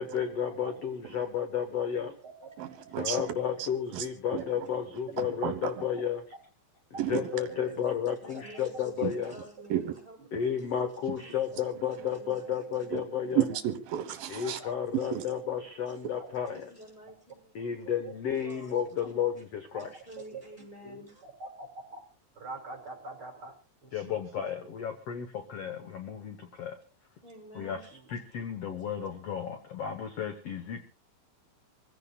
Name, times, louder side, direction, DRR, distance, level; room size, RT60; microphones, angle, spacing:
voice 1, 0.0-2.1 3.0-6.2 7.1-9.3 10.3-13.4 14.3-16.7 17.6-19.9 23.9-26.8 27.6-27.8 28.1-30.8, left 8 dB, 60° left, 1.8 m, -32 dB
voice 2, 1.7-2.1 2.4-2.5 3.1-3.2 4.3-4.4 6.9-7.2 7.5-7.7 14.4-14.7 16.2-16.3 18.0-18.1 19.7-19.9 20.8-22.0 22.4-23.5 23.8-24.2, right 2 dB, 35° right, 3.5 m, -44 dB
voice 3, 2.6-3.2 3.6-4.1 4.3-4.4 5.2-5.8 7.0-7.3 9.0-9.1 9.7-9.9 11.1-11.2 12.9-13.0 13.3-14.6 15.1-15.2, right 11 dB, 75° right, 2.9 m, -32 dB
voice 4, 7.6-13.0 14.8-15.2 15.8-17.7 18.3-19.1 19.7-21.3 27.2-28.2 28.8-28.9, right 1 dB, 10° left, 6.4 m, -51 dB
26.0 x 16.0 x 2.4 m
omnidirectional pair, 4.2 m